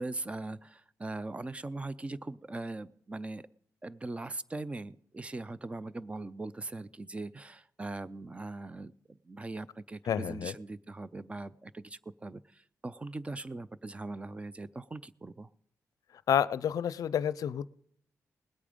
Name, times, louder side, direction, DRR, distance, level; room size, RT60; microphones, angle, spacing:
voice 1, 0.0-3.4 3.8-15.5, right 2 dB, 20° right, 17 dB, 0.5 m, -40 dB
voice 2, 10.1-10.5 16.3-17.7, left 9 dB, 75° left, 19 dB, 0.5 m, -29 dB
20.0 x 8.6 x 5.1 m, 0.68 s
cardioid pair, 100°, 6 cm